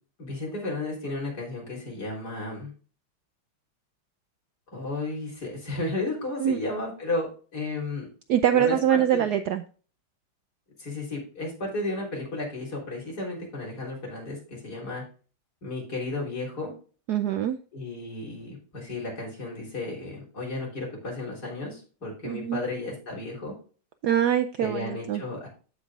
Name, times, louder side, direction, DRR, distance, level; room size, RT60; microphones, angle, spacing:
voice 1, 0.2-2.7 4.7-7.3 7.5-8.1 8.5-9.3 10.8-15.0 15.6-16.7 17.7-23.5 24.6-25.5, left 2 dB, 50° left, -3 dB, 4.1 m, -33 dB
voice 2, 8.3-9.6 17.1-17.6 22.2-22.6 24.0-25.2, right 10 dB, 90° right, 10 dB, 0.8 m, -24 dB
14.5 x 5.3 x 2.4 m, 0.39 s
omnidirectional pair, 2.3 m